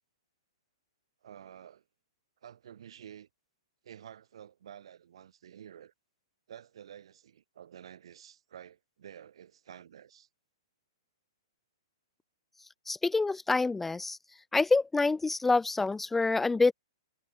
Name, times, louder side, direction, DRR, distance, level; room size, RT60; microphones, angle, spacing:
voice 1, 1.2-1.8 2.4-3.3 3.8-5.9 6.5-10.3, right 9 dB, 70° right, 4.3 m, -50 dB
voice 2, 12.9-14.2 14.5-16.7, left 3 dB, 5° left, 0.3 m, -26 dB
hypercardioid pair, 145°, 3 cm